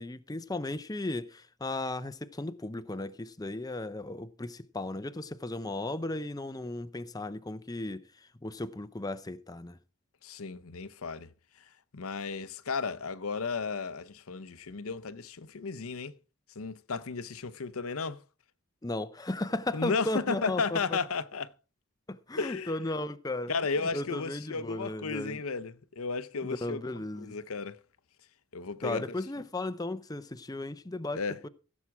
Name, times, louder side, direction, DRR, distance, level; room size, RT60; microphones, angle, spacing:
voice 1, 0.0-9.8 18.8-21.0 22.1-23.5 23.9-25.4 26.4-27.3 28.8-31.5, left 2 dB, 15° left, 0.6 m, -35 dB
voice 2, 10.2-11.3 11.9-16.2 16.6-18.2 19.7-21.5 22.4-22.7 23.5-27.8 28.5-29.2 31.1-31.4, left 4 dB, 85° left, 0.7 m, -34 dB
15.5 x 7.4 x 4.7 m
head